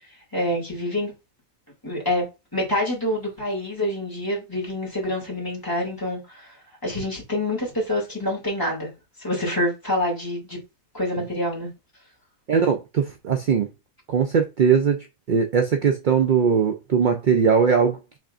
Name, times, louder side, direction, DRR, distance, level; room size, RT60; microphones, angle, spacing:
voice 1, 0.3-1.1 1.8-2.2 2.5-6.6 6.8-8.9 9.2-10.6 10.9-11.7, left 1 dB, 15° left, 2.3 m, -26 dB
voice 2, 12.5-13.7 14.1-15.0 15.3-18.2, right 6 dB, 60° right, 0.5 m, -20 dB
5.6 x 3.6 x 2.4 m
omnidirectional pair, 1.4 m